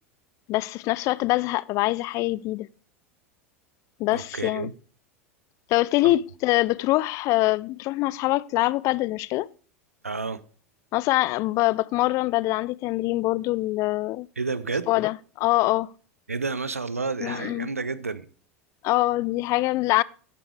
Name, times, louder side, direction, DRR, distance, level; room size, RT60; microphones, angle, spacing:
voice 1, 0.5-2.7 4.0-4.7 5.7-9.5 10.9-14.3 14.9-15.9 17.2-17.7 18.8-20.0, left 18 dB, 45° left, 0.4 m, -24 dB
voice 2, 4.1-4.7 6.0-6.1 10.0-10.4 14.4-14.9 16.3-18.3, right 4 dB, 90° right, 0.6 m, -30 dB
11.0 x 8.2 x 4.8 m
figure-of-eight pair, 80°, 8 cm